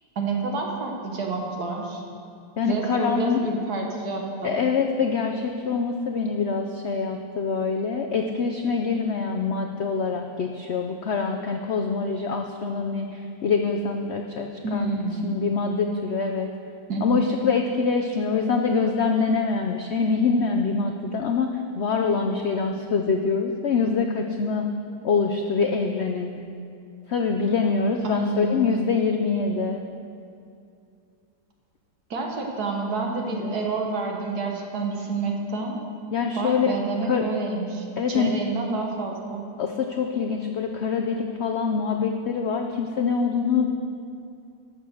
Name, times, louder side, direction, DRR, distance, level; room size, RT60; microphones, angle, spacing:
voice 1, 0.2-2.0 2.6-4.6 14.6-15.4 16.9-17.3 28.0-28.8 32.1-35.8 36.4-39.4, right 3 dB, 60° right, 1 dB, 1.8 m, -28 dB
voice 2, 2.6-3.4 4.4-15.0 15.2-16.5 17.0-24.6 25.0-26.3 27.1-29.8 33.3-33.6 36.1-36.7 37.1-37.2 38.0-38.3 39.6-43.7, left 5 dB, 80° left, 3 dB, 0.6 m, -25 dB
12.5 x 6.9 x 6.3 m, 2.5 s
omnidirectional pair, 1.9 m